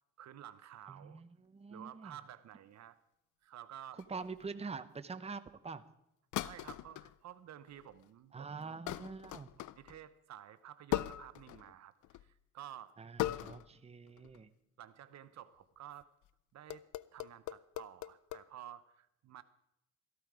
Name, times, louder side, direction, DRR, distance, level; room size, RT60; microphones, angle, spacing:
voice 1, 0.2-1.2 1.7-3.0 3.4-4.0 6.4-8.8 9.8-12.9 14.8-16.1 16.5-16.8 17.1-19.4, right 11 dB, 65° right, 13 dB, 0.8 m, -52 dB
voice 2, 0.9-2.2 3.9-5.8 8.3-9.5 13.0-14.5, right 4 dB, 20° right, 11 dB, 0.8 m, -45 dB
sound 1, 4.0-4.4 6.3-7.1 7.7-8.1 8.9-10.0 10.9-11.7 12.0-12.3 13.2-13.8 14.1-14.4 16.0-16.3 16.7-18.4, left 14 dB, 75° left, 0.5 m, -40 dB
14.0 x 13.0 x 4.8 m, 0.82 s
cardioid pair, 90°, 30 cm